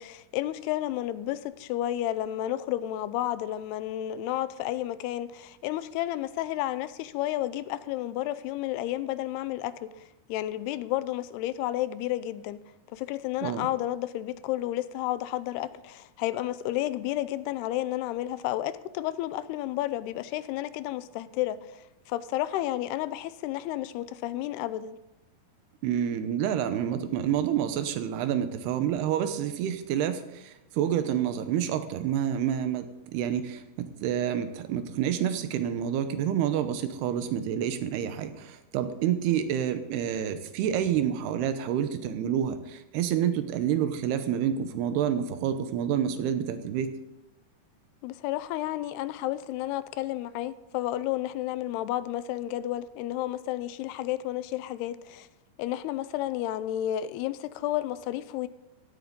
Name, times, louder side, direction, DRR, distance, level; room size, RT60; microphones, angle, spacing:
voice 1, 0.0-9.9 10.3-12.6 12.9-25.0 48.0-55.3 55.6-58.5, left 14 dB, 85° left, 2.6 m, -31 dB
voice 2, 25.8-46.9, right 9 dB, 80° right, 3.0 m, -28 dB
15.5 x 13.0 x 3.7 m
omnidirectional pair, 4.6 m